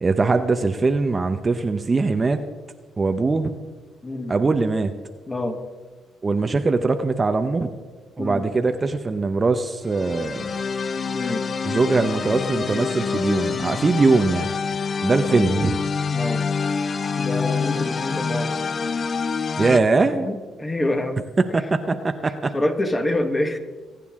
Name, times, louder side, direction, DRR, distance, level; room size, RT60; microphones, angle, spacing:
voice 1, 0.0-2.4 3.0-3.5 4.3-4.9 6.2-7.7 8.2-10.6 11.6-14.5 15.0-15.8 19.6-20.3 21.5-21.9 22.2-22.5, right 3 dB, 30° right, 7 dB, 0.8 m, -21 dB
voice 2, 4.0-4.4 5.3-5.6 8.2-8.5 11.1-11.5 15.3-15.5 16.1-16.5 17.2-18.6 20.2-21.2 21.5-21.6 21.9-23.6, left 1 dB, 20° left, 5 dB, 1.7 m, -27 dB
sound 1, 9.9-19.8, left 5 dB, 40° left, 0.6 m, -26 dB
22.5 x 9.3 x 3.7 m, 1.4 s
cardioid pair, 90°, 0 cm